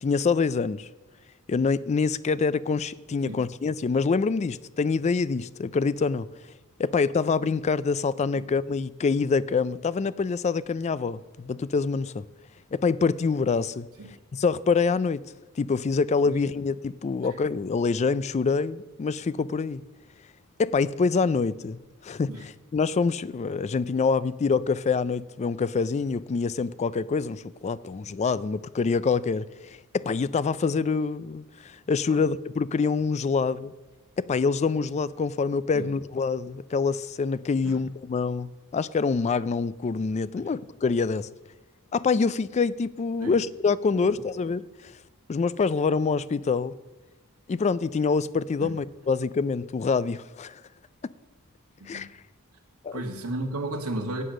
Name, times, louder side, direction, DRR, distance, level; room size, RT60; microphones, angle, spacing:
voice 1, 0.0-0.9 1.5-6.3 6.8-12.3 12.7-13.9 14.3-15.3 15.6-19.8 20.6-33.7 34.2-41.3 41.9-44.7 45.3-46.7 47.5-50.6 51.9-52.1 52.8-53.0, left 4 dB, 30° left, 0.3 m, -26 dB
voice 2, 52.9-54.2, right 2 dB, 90° right, 1.6 m, -34 dB
11.5 x 7.8 x 6.4 m
head